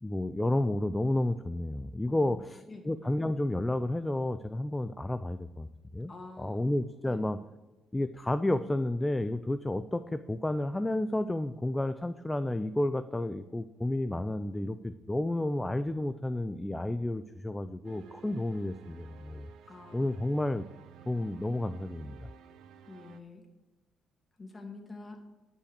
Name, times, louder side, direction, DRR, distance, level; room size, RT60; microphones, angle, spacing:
voice 1, 0.0-5.7 5.9-6.1 6.4-7.4 7.9-19.5 19.9-20.7 21.1-22.3, left 1 dB, 10° left, 10 dB, 0.5 m, -31 dB
voice 2, 2.1-2.9 6.1-6.7 7.0-7.3 19.6-20.1 22.9-23.4 24.4-25.2, left 3 dB, 30° left, 2 dB, 2.6 m, -47 dB
sound 1, 17.8-23.2, right 9 dB, 80° right, 0.7 m, -53 dB
11.5 x 5.5 x 6.7 m, 1.1 s
cardioid pair, 90°, 0 cm